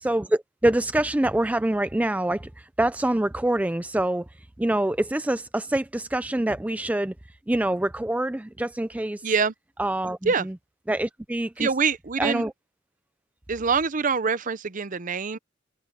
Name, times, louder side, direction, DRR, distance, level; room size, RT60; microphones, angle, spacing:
voice 1, 0.0-4.3 4.6-7.1 7.5-9.2 9.8-10.6 10.9-11.7 12.2-12.5, right 1 dB, 5° right, 0.4 m, -25 dB
voice 2, 9.2-9.5 10.2-10.5 11.6-12.5 13.5-15.4, right 5 dB, 40° right, 0.7 m, -25 dB
head